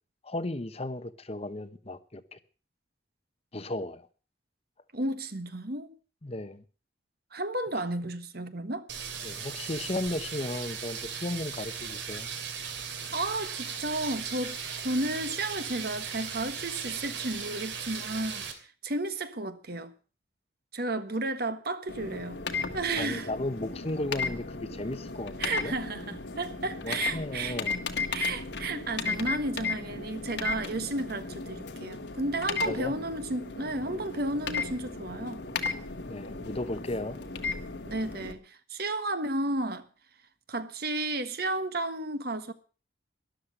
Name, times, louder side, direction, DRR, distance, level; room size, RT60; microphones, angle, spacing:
voice 1, 0.2-2.4 3.5-4.1 6.2-6.6 9.2-12.3 23.0-25.8 26.8-27.8 32.6-33.0 36.1-37.2, left 2 dB, 30° left, 0.9 m, -35 dB
voice 2, 4.9-5.9 7.3-8.9 13.1-19.9 20.7-22.4 22.7-23.3 25.4-27.6 28.1-35.4 37.8-39.9 40.5-42.5, right 2 dB, 55° right, 1.4 m, -33 dB
sound 1, 8.9-18.5, right 6 dB, 75° right, 2.7 m, -37 dB
sound 2, 21.9-38.3, left 4 dB, 65° left, 1.7 m, -35 dB
13.0 x 11.5 x 6.5 m
head